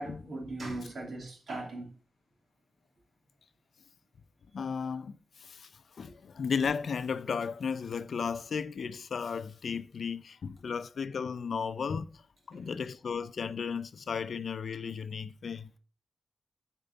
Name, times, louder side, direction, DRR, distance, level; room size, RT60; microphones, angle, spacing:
voice 1, 0.0-1.9 12.5-12.7, right 2 dB, 55° right, 2.5 m, -39 dB
voice 2, 4.5-5.7 6.0-12.2 12.5-15.7, left 6 dB, 65° left, 0.6 m, -34 dB
9.1 x 4.5 x 7.0 m
wide cardioid pair, 160°, 0 cm